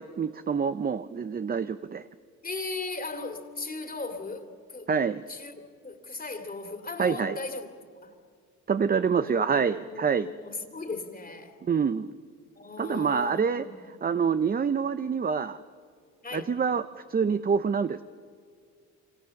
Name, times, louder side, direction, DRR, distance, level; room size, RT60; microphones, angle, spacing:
voice 1, 0.0-2.0 4.9-5.2 7.0-7.4 8.7-10.3 11.6-12.1 12.8-13.7 14.0-15.6 16.3-18.0, right 6 dB, 30° right, 12 dB, 0.7 m, -26 dB
voice 2, 2.4-4.9 5.3-7.7 8.0-8.1 9.2-11.6 12.6-13.9 16.2-16.6, left 3 dB, 30° left, 6 dB, 2.6 m, -38 dB
27.5 x 25.0 x 7.1 m, 2.1 s
cardioid pair, 90°, 30 cm